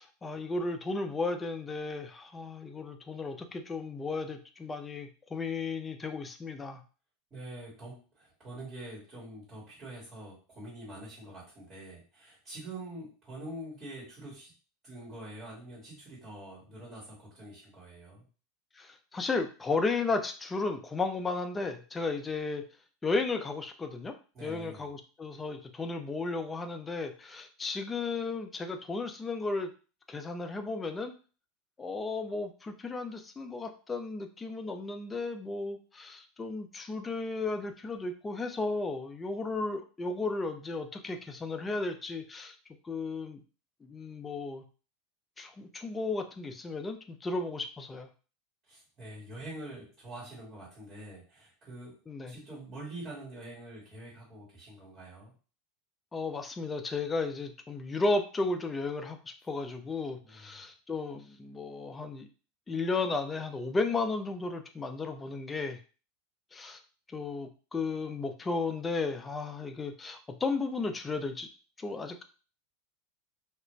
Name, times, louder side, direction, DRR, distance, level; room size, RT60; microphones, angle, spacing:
voice 1, 0.0-6.8 18.8-22.6 23.0-24.1 24.4-29.7 30.1-31.1 31.8-42.6 42.8-43.4 43.8-44.6 45.4-48.1 52.1-52.4 56.1-62.3 62.7-65.8 66.5-66.8 67.1-71.5 71.8-72.2, left 3 dB, 15° left, 6 dB, 0.4 m, -34 dB
voice 2, 7.3-14.5 14.8-18.3 24.3-24.9 48.7-55.3 60.2-60.6, right 1 dB, 25° right, -6 dB, 1.3 m, -45 dB
2.4 x 2.1 x 3.0 m, 0.37 s
supercardioid pair, 130°, 0 cm